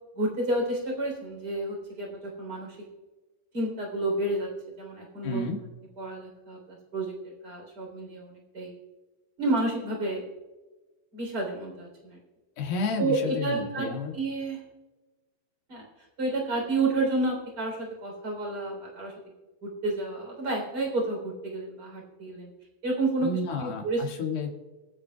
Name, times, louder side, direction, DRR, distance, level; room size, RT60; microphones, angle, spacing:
voice 1, 0.2-2.8 3.5-4.5 4.8-5.4 6.0-8.7 9.4-10.2 11.1-12.2 13.0-13.9 14.1-14.6 15.7-15.8 16.2-19.1 19.6-22.5 22.8-23.3 23.6-24.0, right 2 dB, 30° right, 0 dB, 3.7 m, -30 dB
voice 2, 5.2-5.6 12.6-14.1 23.2-24.5, left 3 dB, 85° left, 1 dB, 3.7 m, -31 dB
25.5 x 8.8 x 2.3 m, 1.2 s
omnidirectional pair, 4.2 m